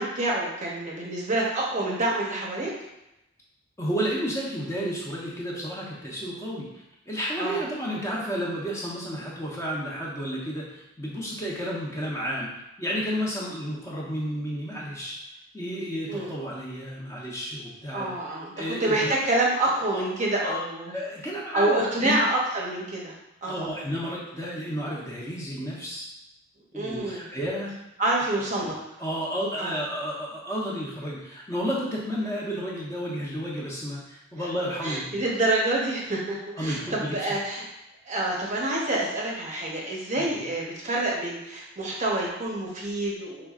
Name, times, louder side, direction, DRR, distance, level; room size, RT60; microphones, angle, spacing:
voice 1, 0.0-2.7 7.4-7.6 16.1-16.3 17.9-18.5 18.8-20.9 21.5-23.1 23.4-23.7 26.7-27.2 28.0-28.8 29.6-29.8 34.8-37.7 38.1-43.5, right 2 dB, 35° right, -3 dB, 0.8 m, -27 dB
voice 2, 3.8-15.2 15.5-18.1 18.6-19.1 19.9-20.0 20.4-22.2 23.5-26.1 26.7-27.7 28.6-28.7 29.0-35.2 36.6-37.4 40.2-40.3, equal, 15° left, -6 dB, 0.9 m, -32 dB
5.5 x 3.6 x 2.4 m, 0.90 s
head